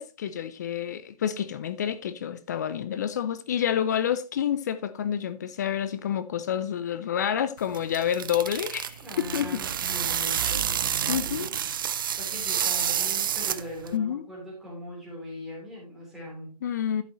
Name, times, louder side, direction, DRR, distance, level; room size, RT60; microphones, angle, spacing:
voice 1, 0.0-9.6 10.4-10.6 11.1-11.5 13.9-14.2 16.6-17.0, left 9 dB, 25° left, 0.5 m, -29 dB
sound 1, 7.6-13.9, right 9 dB, 35° right, 0.4 m, -29 dB
voice 2, 9.0-11.7 12.0-16.5, left 1 dB, ahead, 3.8 m, -41 dB
11.5 x 7.9 x 3.0 m
hypercardioid pair, 150°, 20 cm